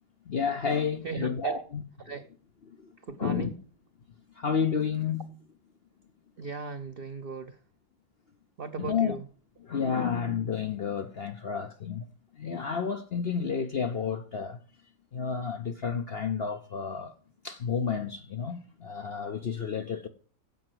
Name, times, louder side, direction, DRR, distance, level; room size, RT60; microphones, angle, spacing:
voice 1, 0.3-1.8 2.8-2.9 3.2-3.5 4.4-5.3 8.8-9.2 9.6-12.1 12.4-14.6 15.1-17.1 17.4-20.1, left 6 dB, 60° left, 0.6 m, -31 dB
voice 2, 1.0-1.7 2.0-2.3 3.1-3.6 6.4-7.6 8.6-9.2, right 5 dB, 85° right, 0.5 m, -36 dB
10.5 x 7.8 x 7.8 m
omnidirectional pair, 1.9 m